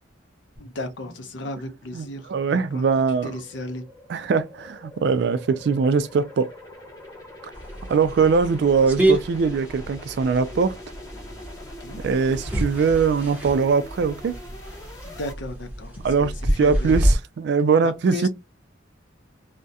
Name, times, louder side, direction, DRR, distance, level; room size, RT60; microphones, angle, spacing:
voice 1, 0.6-2.9 3.2-3.9 11.8-12.0 15.0-17.0 17.8-18.3, left 1 dB, 75° left, 0.6 m, -35 dB
sound 1, 0.6-15.3, left 1 dB, 20° left, 0.8 m, -44 dB
voice 2, 1.9-3.3 4.1-6.5 7.8-10.7 12.0-14.4 16.0-18.3, right 5 dB, 60° right, 0.3 m, -21 dB
sound 2, 7.5-17.1, right 1 dB, 10° right, 0.7 m, -28 dB
2.3 x 2.1 x 2.7 m
head